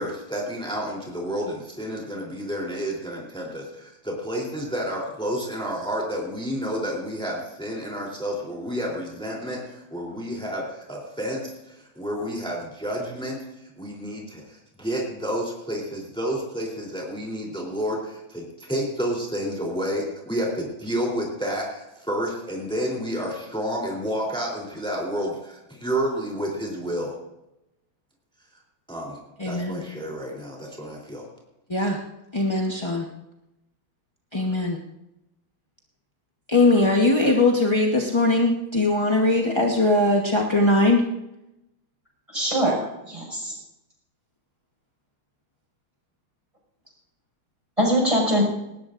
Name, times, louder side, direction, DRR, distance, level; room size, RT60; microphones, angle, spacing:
voice 1, 0.0-13.4 13.8-27.1 28.9-29.2 29.4-31.2, equal, ahead, -2 dB, 3.2 m, -30 dB
voice 2, 29.4-29.8 31.7-32.0 32.3-33.1 34.3-34.8 36.5-41.0, left 2 dB, 20° left, -1 dB, 0.7 m, -20 dB
voice 3, 42.3-43.5 47.8-48.4, equal, 15° right, -1 dB, 5.8 m, -22 dB
19.5 x 19.0 x 2.6 m, 0.90 s
omnidirectional pair, 2.3 m